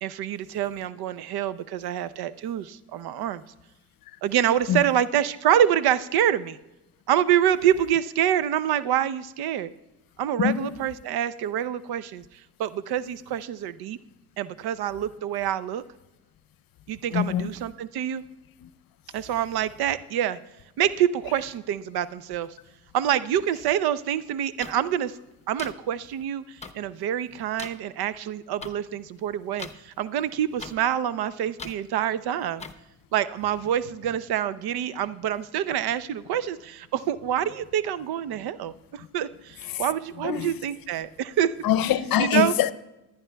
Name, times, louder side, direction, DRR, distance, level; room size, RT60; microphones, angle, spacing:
voice 1, 0.0-3.4 4.2-6.6 7.1-9.7 10.2-12.2 12.6-14.0 14.4-15.8 16.9-18.2 19.1-20.4 20.8-22.5 22.9-25.2 25.5-32.6 33.1-41.5 42.2-42.5, right 10 dB, 70° right, 0.7 m, -26 dB
voice 2, 10.4-10.8 17.1-17.6 18.6-18.7 21.3-21.4 39.6-40.6 41.6-42.7, left 10 dB, 60° left, 0.7 m, -25 dB
sound 1, 24.6-24.7 25.6-25.7 26.6-26.7 27.6-27.7 28.6-28.7 29.6-29.7 30.6-30.7 31.6-31.7 32.6-32.7, left 4 dB, 15° left, 0.8 m, -37 dB
19.5 x 9.6 x 2.3 m
supercardioid pair, 60°, 39 cm